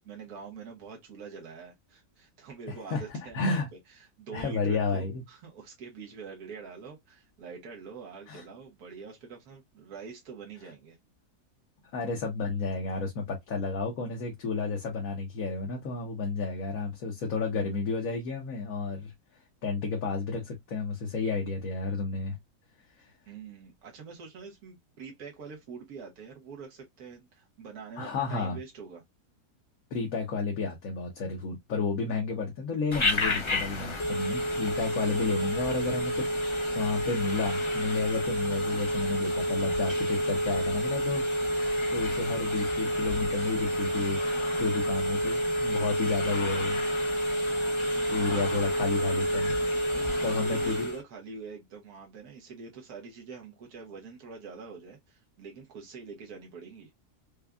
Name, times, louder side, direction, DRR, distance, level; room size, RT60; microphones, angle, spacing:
voice 1, 0.0-3.6 3.9-11.0 23.3-29.0 48.1-48.6 49.9-56.9, right 5 dB, 75° right, 1.6 m, -45 dB
voice 2, 2.7-3.0 3.3-3.7 4.3-5.1 8.3-8.4 11.9-19.1 19.6-22.4 23.0-23.1 28.0-28.6 29.9-44.2 44.6-46.8 47.3-47.5 48.1-49.5 50.2-50.9, left 4 dB, 65° left, 1.3 m, -32 dB
Telephone, 32.9-51.0, equal, 45° left, 0.3 m, -29 dB
5.1 x 2.3 x 2.3 m
omnidirectional pair, 1.6 m